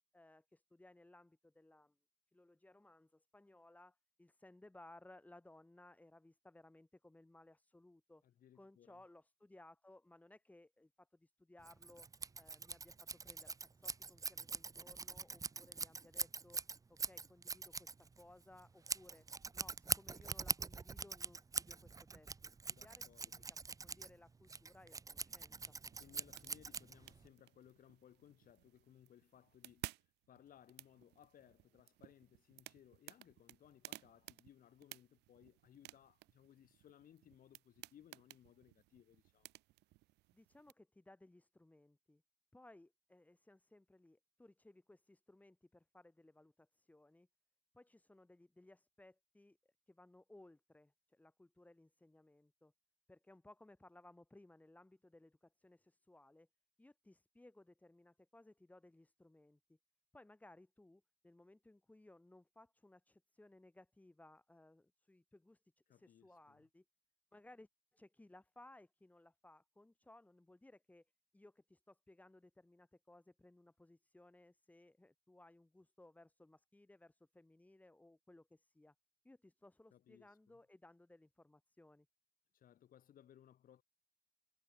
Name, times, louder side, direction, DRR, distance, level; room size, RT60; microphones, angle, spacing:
voice 1, 0.1-2.0 2.3-8.2 8.5-12.1 12.4-16.6 16.9-19.3 19.5-23.3 23.8-25.8 40.3-42.2 42.5-47.3 47.7-49.6 49.9-52.7 53.1-56.5 56.8-59.8 60.1-65.6 65.9-66.8 67.3-71.1 71.3-78.9 79.2-82.1, left 2 dB, 10° left, 2.5 m, -63 dB
voice 2, 8.2-9.0 22.7-23.5 26.0-39.5 65.9-66.7 79.9-80.6 82.5-83.8, left 10 dB, 55° left, 6.5 m, -64 dB
Scissors, 11.6-27.3, right 4 dB, 20° right, 0.7 m, -44 dB
sound 1, 25.5-40.7, right 19 dB, 85° right, 2.5 m, -57 dB
cardioid pair, 110°, 17 cm